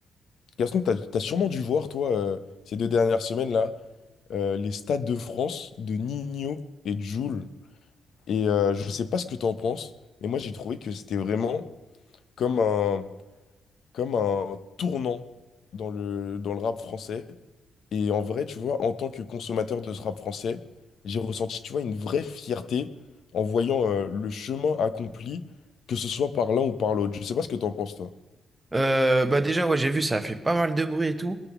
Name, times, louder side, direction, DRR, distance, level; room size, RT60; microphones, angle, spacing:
voice 1, 0.6-2.4 2.7-3.7 4.3-6.6 6.8-7.5 8.3-9.9 10.2-11.6 12.4-13.1 13.9-15.2 15.7-17.2 17.9-20.6 21.0-22.9 23.3-25.4 25.9-28.1, left 6 dB, 60° left, 13 dB, 0.8 m, -27 dB
voice 2, 28.7-31.4, right 2 dB, 10° right, 7 dB, 1.0 m, -24 dB
20.5 x 6.9 x 6.0 m, 1.2 s
cardioid pair, 150°, 0 cm